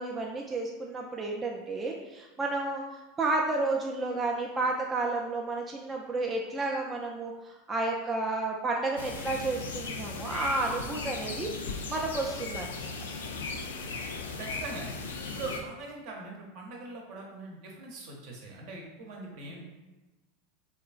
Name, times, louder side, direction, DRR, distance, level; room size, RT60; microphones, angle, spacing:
voice 1, 0.0-2.8 3.2-12.9, right 2 dB, 20° right, -1 dB, 0.3 m, -31 dB
sound 1, 9.0-15.6, left 4 dB, 80° left, 0.3 m, -37 dB
voice 2, 14.4-15.0 15.3-19.6, right 3 dB, 60° right, -1 dB, 0.7 m, -41 dB
2.9 x 2.3 x 2.4 m, 1.1 s
hypercardioid pair, 90°, 0 cm